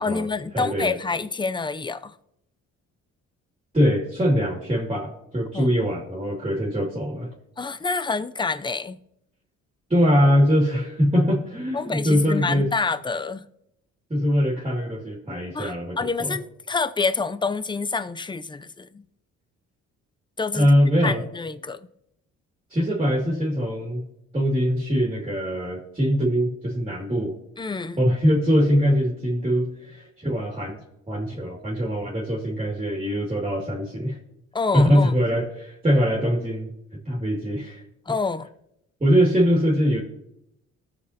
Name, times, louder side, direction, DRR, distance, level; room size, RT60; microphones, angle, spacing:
voice 1, 0.0-2.1 5.5-5.7 7.6-9.0 11.7-13.5 15.5-19.0 20.4-20.7 21.0-21.9 27.6-28.0 34.5-35.1 38.1-38.5, left 4 dB, 15° left, 0.5 m, -27 dB
voice 2, 0.5-1.0 3.7-7.3 9.9-12.7 14.1-16.4 20.5-21.2 22.7-24.1 24.3-27.4 28.0-30.8 31.1-34.2 34.7-36.7 37.1-37.8 39.0-40.0, equal, 20° right, 2.2 m, -22 dB
18.5 x 6.6 x 2.8 m
cardioid pair, 90°, 30 cm